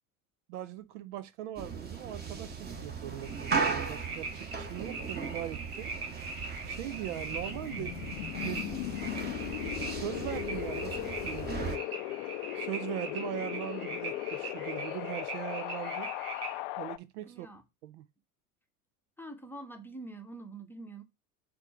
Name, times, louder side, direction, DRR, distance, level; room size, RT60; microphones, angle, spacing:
voice 1, 0.5-5.9 6.7-7.9 8.4-8.8 9.8-11.8 12.6-16.1 16.8-17.5 17.8-18.1, right 13 dB, 55° right, 0.6 m, -40 dB
sound 1, 1.6-11.8, right 5 dB, 20° right, 1.3 m, -37 dB
sound 2, 3.2-16.6, right 3 dB, 75° right, 2.1 m, -42 dB
Wind, 6.8-17.0, left 16 dB, 45° left, 0.5 m, -38 dB
voice 2, 17.3-17.6 19.2-21.0, right 2 dB, 5° left, 0.9 m, -45 dB
4.4 x 3.8 x 5.6 m
figure-of-eight pair, 80°, 45 cm